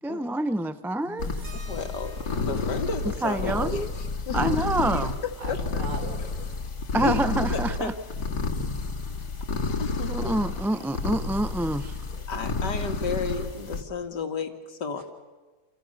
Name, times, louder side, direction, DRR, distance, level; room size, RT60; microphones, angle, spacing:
voice 1, 0.0-1.3 3.2-3.9 4.3-5.1 6.9-7.9 10.1-11.9, right 1 dB, 5° right, 11 dB, 0.4 m, -27 dB
voice 2, 1.0-2.1 2.4-2.7 5.4-6.6 7.1-7.2 8.3-8.5 12.1-12.2 14.9-15.0, right 1 dB, 70° right, 3 dB, 5.0 m, -42 dB
sound 1, 1.2-13.8, left 3 dB, 65° left, 2.9 m, -30 dB
sound 2, 1.4-6.6 6.9-7.0 7.3-9.1 10.4-10.5 11.2-11.3, right 3 dB, 45° right, 6.3 m, -53 dB
voice 3, 1.7-4.4 5.0-5.8 7.0-7.2 7.5-7.9 9.8-10.4 12.3-15.0, left 5 dB, 80° left, 6 dB, 2.6 m, -33 dB
30.0 x 27.0 x 6.6 m, 1.3 s
omnidirectional pair, 1.8 m